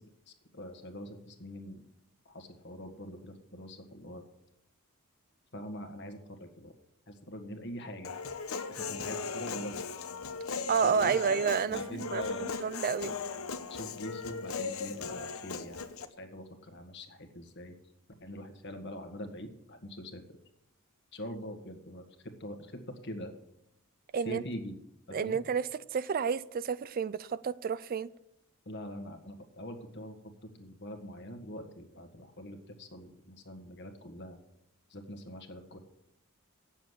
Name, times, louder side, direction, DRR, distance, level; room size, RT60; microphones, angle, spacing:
voice 1, 0.3-1.8 2.2-4.2 5.5-6.7 7.1-8.2 8.7-9.7 10.8-12.5 13.7-15.9 16.2-17.7 18.2-20.2 21.1-22.0 22.4-23.3 24.2-24.8 25.1-25.4 28.6-34.4 34.9-35.8, equal, 55° left, 1.7 m, -43 dB
Human voice, 8.0-16.1, left 5 dB, 75° left, 0.9 m, -38 dB
voice 2, 10.7-13.2 24.1-24.4 25.1-28.1, right 6 dB, 40° right, 0.3 m, -30 dB
9.1 x 7.3 x 8.0 m
head